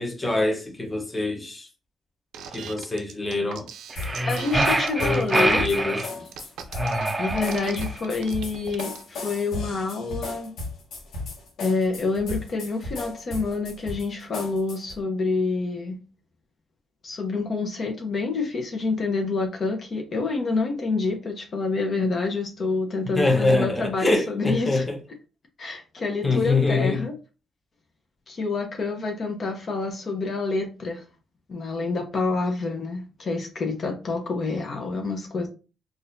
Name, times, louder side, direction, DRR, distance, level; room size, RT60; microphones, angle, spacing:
voice 1, 0.0-1.7 2.5-3.7 5.0-6.3 23.2-25.0 26.2-27.0, left 2 dB, 15° left, 0.9 m, -24 dB
sound 1, 2.3-9.0, right 7 dB, 80° right, 0.5 m, -39 dB
sound 2, 3.9-15.0, left 3 dB, 75° left, 1.1 m, -35 dB
sound 3, 3.9-6.1 6.7-8.0, right 2 dB, 15° right, 0.5 m, -25 dB
voice 2, 4.3-5.6 7.2-10.5 11.6-16.0 17.0-24.8 25.6-27.1 28.3-31.0 31.5-35.5, left 3 dB, 45° left, 0.8 m, -27 dB
3.9 x 2.5 x 2.6 m
cardioid pair, 90°, 0 cm